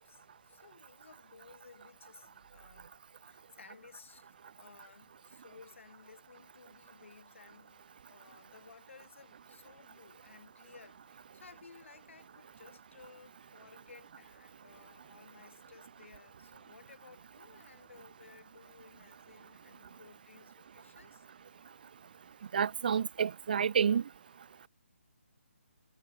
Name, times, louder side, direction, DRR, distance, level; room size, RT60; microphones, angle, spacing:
voice 1, 0.0-4.3 4.6-21.3, left 4 dB, 65° left, 4.7 m, -57 dB
voice 2, 22.5-24.0, right 7 dB, 40° right, 0.3 m, -29 dB
figure-of-eight pair, 160°, 7 cm